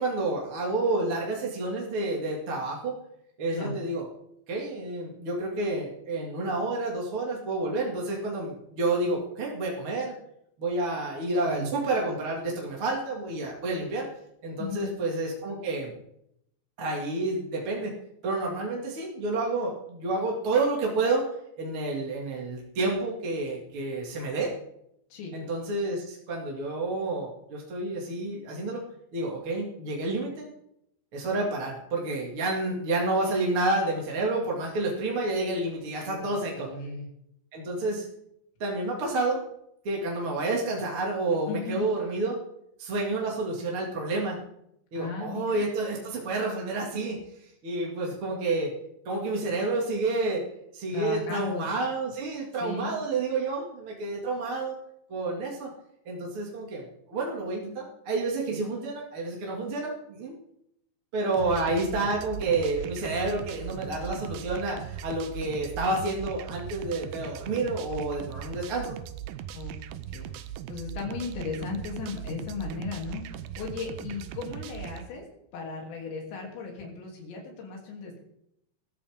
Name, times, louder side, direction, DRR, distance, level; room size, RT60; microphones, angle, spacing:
voice 1, 0.0-3.0 3.4-4.1 4.5-10.2 10.6-14.1 14.4-15.9 16.8-17.9 18.2-21.2 21.6-24.5 25.3-28.8 29.1-30.5 31.1-36.7 37.5-38.1 38.6-39.4 39.8-42.4 42.8-44.4 44.9-48.7 49.0-50.5 50.7-54.8 55.1-55.7 56.1-60.4 61.1-69.0, right 2 dB, 40° right, -2 dB, 2.5 m, -29 dB
voice 2, 14.6-14.9 25.1-25.3 36.0-36.3 36.6-37.1 41.5-41.9 45.0-45.7 50.9-51.7 52.6-53.0 69.5-69.8 70.1-70.3 70.7-75.3 75.5-78.2, left 4 dB, 85° left, 0 dB, 5.3 m, -36 dB
sound 1, 61.3-75.1, right 11 dB, 90° right, 2.1 m, -39 dB
21.0 x 14.5 x 3.7 m, 0.78 s
omnidirectional pair, 5.0 m